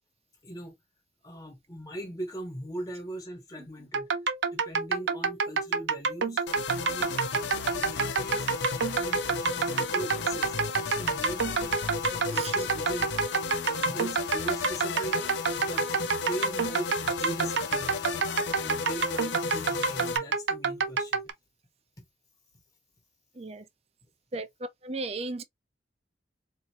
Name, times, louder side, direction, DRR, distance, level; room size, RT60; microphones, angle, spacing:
voice 1, 0.4-0.8 1.2-4.1 4.5-7.1 7.4-8.5 8.9-10.6 10.8-13.1 13.7-18.0 18.5-21.2 22.0-22.1, right 1 dB, 20° left, 1.2 m, -40 dB
sound 1, 3.9-21.3, right 5 dB, 80° right, 0.6 m, -28 dB
sound 2, 6.5-20.2, left 5 dB, 85° left, 0.6 m, -34 dB
voice 2, 24.8-25.4, right 3 dB, 35° right, 0.5 m, -35 dB
4.2 x 2.6 x 2.8 m
head